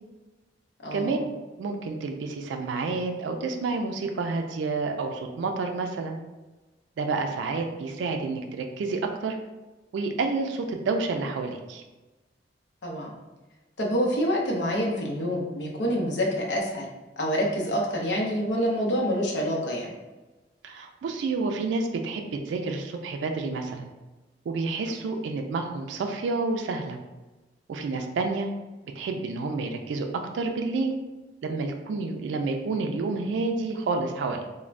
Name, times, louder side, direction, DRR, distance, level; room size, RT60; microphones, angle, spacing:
voice 1, 0.8-1.2 12.8-13.1 13.8-16.9 17.2-19.9, equal, 80° left, -1 dB, 0.6 m, -27 dB
voice 2, 1.6-6.2 7.0-9.4 9.9-11.8 20.6-23.9 24.5-27.0 27.7-28.5 29.0-30.1 30.3-30.9 31.4-34.4, right 3 dB, 85° right, 5 dB, 0.3 m, -29 dB
3.2 x 2.1 x 2.4 m, 1.1 s
head